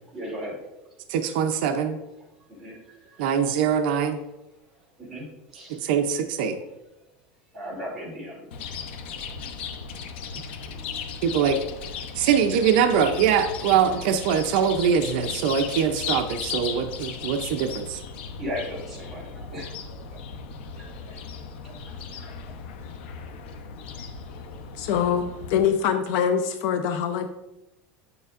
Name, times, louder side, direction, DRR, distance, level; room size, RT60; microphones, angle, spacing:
voice 1, 0.1-0.6 2.5-3.2 4.0-4.1 5.0-5.8 7.5-8.7 18.4-20.2 20.7-21.2 21.6-22.3 23.3-23.4 24.0-24.6, equal, 5° right, -8 dB, 2.7 m, -38 dB
voice 2, 1.1-2.0 3.2-4.2 5.7-6.6 11.2-11.6 12.1-18.0, right 7 dB, 60° right, 6 dB, 0.5 m, -23 dB
Chirp tweet, 8.5-25.7, left 6 dB, 85° left, 0.7 m, -36 dB
voice 3, 24.7-27.3, left 8 dB, 50° left, 8 dB, 0.5 m, -24 dB
9.1 x 6.8 x 2.5 m, 0.95 s
supercardioid pair, 175°, 6 cm